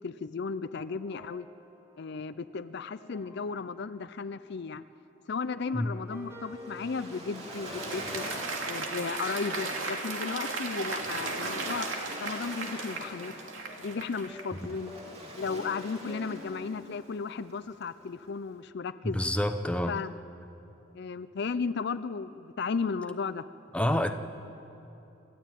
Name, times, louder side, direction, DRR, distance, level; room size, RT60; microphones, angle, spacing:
voice 1, 0.0-1.5 2.0-4.8 5.3-8.2 8.7-11.9 12.2-13.3 13.8-15.0 15.3-19.2 19.9-20.1 20.9-23.5, left 5 dB, 55° left, 13 dB, 0.5 m, -35 dB
sound 1, 0.9-4.0 4.4-4.9 5.6-17.0, left 1 dB, 15° right, 2.8 m, -50 dB
Waves surf, 6.1-18.5, right 1 dB, 30° right, 3.1 m, -46 dB
Applause, 7.0-14.6, right 3 dB, 80° right, 2.6 m, -36 dB
voice 2, 19.0-20.0 23.7-24.2, left 1 dB, 5° left, 7 dB, 0.8 m, -28 dB
27.5 x 14.0 x 9.1 m, 2.9 s
head